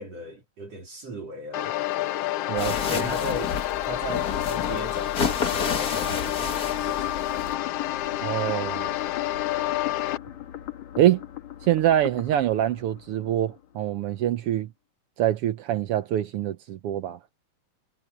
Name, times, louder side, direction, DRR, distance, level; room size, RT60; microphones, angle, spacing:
voice 1, 0.0-1.7 2.8-3.6 3.9-7.5, equal, 55° right, 4.7 m, -37 dB
sound 1, 1.5-10.2, left 14 dB, 80° left, 1.4 m, -29 dB
voice 2, 2.5-3.0 8.2-8.9 11.0-11.2 11.7-14.7 15.2-17.2, right 12 dB, 80° right, 1.3 m, -25 dB
sound 2, 2.6-7.6, left 5 dB, 35° left, 1.7 m, -31 dB
sound 3, 7.0-14.0, left 13 dB, 65° left, 2.8 m, -39 dB
omnidirectional pair, 3.5 m